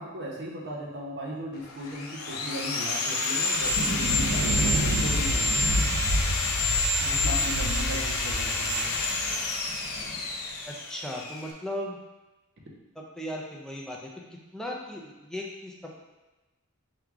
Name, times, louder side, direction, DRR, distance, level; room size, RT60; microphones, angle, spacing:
voice 1, 0.0-4.7 5.0-5.6 7.0-9.0, equal, 55° right, -3 dB, 0.8 m, -37 dB
Sawing, 1.6-11.5, left 2 dB, 85° left, 0.6 m, -28 dB
Thunder, 3.5-10.2, equal, 85° right, 0.5 m, -30 dB
voice 2, 10.7-12.0 13.0-14.1 14.5-15.9, left 1 dB, 5° left, -2 dB, 0.4 m, -37 dB
4.7 x 2.4 x 3.6 m, 1.1 s
head